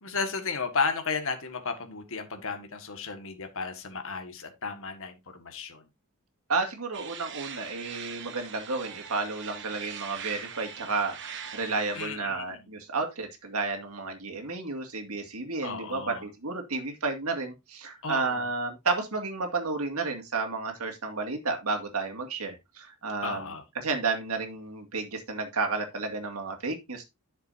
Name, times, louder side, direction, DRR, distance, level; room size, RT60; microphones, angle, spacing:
voice 1, 0.0-5.8 12.0-12.5 15.6-16.2 18.0-18.4 23.2-23.6, left 4 dB, 65° left, 1.7 m, -33 dB
voice 2, 6.5-23.5 23.8-27.1, right 3 dB, 75° right, 2.2 m, -32 dB
sound 1, 6.9-12.1, right 8 dB, 55° right, 1.2 m, -42 dB
11.0 x 6.7 x 2.7 m
head